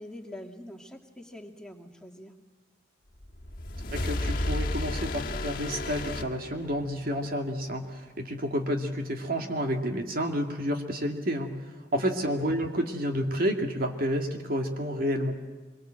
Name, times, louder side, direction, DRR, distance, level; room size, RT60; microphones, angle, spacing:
voice 1, 0.0-2.3 12.0-12.2, left 1 dB, 5° left, 1 dB, 2.4 m, -44 dB
sound 1, 3.2-7.0, left 1 dB, 50° left, 1.7 m, -32 dB
voice 2, 3.9-11.5 11.9-15.4, equal, 55° right, 3 dB, 2.3 m, -30 dB
25.0 x 23.0 x 7.7 m, 1.4 s
head